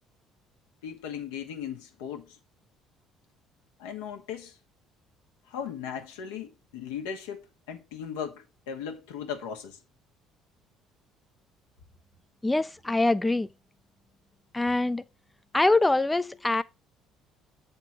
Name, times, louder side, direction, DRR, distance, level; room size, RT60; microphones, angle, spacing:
voice 1, 0.8-2.4 3.8-4.6 5.5-9.8, left 8 dB, 90° left, 1.2 m, -37 dB
voice 2, 12.4-13.5 14.5-15.0 15.5-16.6, left 2 dB, 15° left, 0.3 m, -24 dB
7.3 x 3.6 x 4.4 m
supercardioid pair, 70°, 0 cm